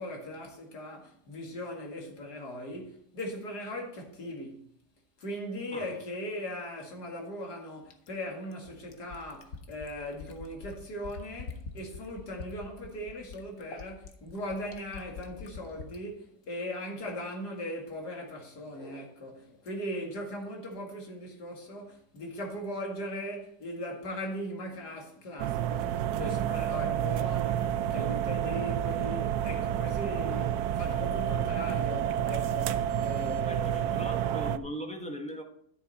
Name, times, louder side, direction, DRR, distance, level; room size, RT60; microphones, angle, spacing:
voice 1, 0.0-4.7 5.2-34.0, equal, 70° left, 2.6 m, -39 dB
Fill (with liquid), 7.9-16.0 17.3-17.4, left 5 dB, 55° left, 1.4 m, -45 dB
sound 1, 25.4-34.6, right 10 dB, 70° right, 1.0 m, -29 dB
voice 2, 33.5-35.4, equal, 5° left, 1.2 m, -39 dB
12.0 x 7.1 x 4.2 m
omnidirectional pair, 1.8 m